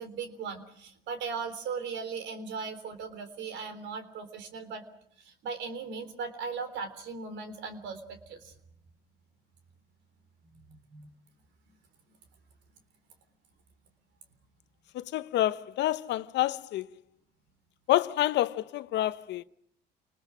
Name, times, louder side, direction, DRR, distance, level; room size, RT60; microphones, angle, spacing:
voice 1, 0.0-4.8 5.2-8.5 10.7-11.1, right 5 dB, 70° right, 3.6 m, -38 dB
voice 2, 14.9-16.9 17.9-19.4, left 14 dB, 70° left, 0.9 m, -28 dB
28.5 x 20.0 x 6.2 m
supercardioid pair, 75°, 19 cm